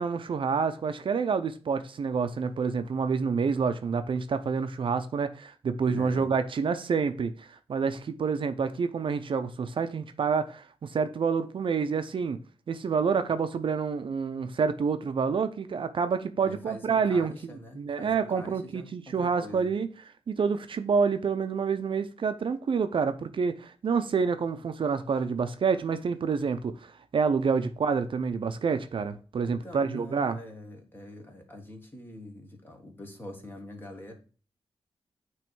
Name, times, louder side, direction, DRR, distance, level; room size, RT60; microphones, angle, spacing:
voice 1, 0.0-12.4 12.7-17.3 17.8-19.9 20.3-30.4, right 5 dB, 55° right, 0.5 m, -28 dB
voice 2, 5.9-6.3 16.4-19.7 29.4-34.1, left 1 dB, 20° left, 1.5 m, -44 dB
9.1 x 3.1 x 4.5 m
wide cardioid pair, 145°, 10 cm